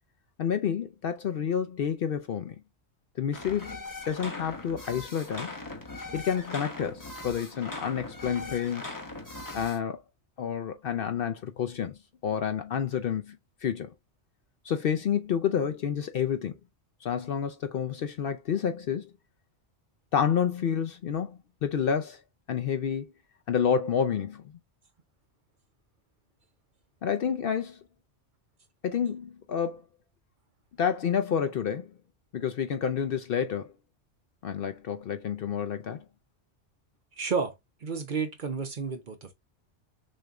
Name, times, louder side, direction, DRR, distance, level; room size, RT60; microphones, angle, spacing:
voice 1, 0.4-2.5 3.2-3.8 4.1-5.6 6.1-8.9 9.5-10.0 10.4-12.0 12.2-13.9 14.6-16.6 17.0-19.1 20.1-22.2 22.5-23.1 23.5-24.5 27.0-27.8 28.8-29.8 30.8-31.9 32.3-33.7 34.4-36.0, left 8 dB, 60° left, 0.7 m, -29 dB
sound 1, 3.3-9.8, left 2 dB, 20° left, 0.8 m, -40 dB
voice 2, 37.2-37.5 37.8-39.3, right 5 dB, 50° right, 0.8 m, -31 dB
6.4 x 2.7 x 2.3 m
omnidirectional pair, 1.2 m